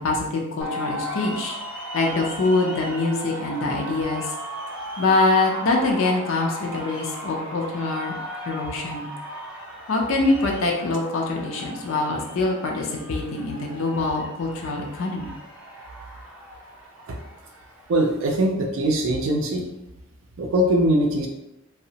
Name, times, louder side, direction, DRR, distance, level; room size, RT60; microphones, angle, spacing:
voice 1, 0.0-1.6 1.9-4.3 5.0-8.1 8.5-9.1 9.9-15.3, left 2 dB, 75° left, 0 dB, 0.4 m, -24 dB
crowd ext cheering whistling crazy, 0.6-18.4, equal, 5° right, 0.4 m, -37 dB
voice 2, 17.9-19.7 20.4-21.3, right 1 dB, 70° right, 1 dB, 0.4 m, -21 dB
2.8 x 2.0 x 2.7 m, 0.90 s
head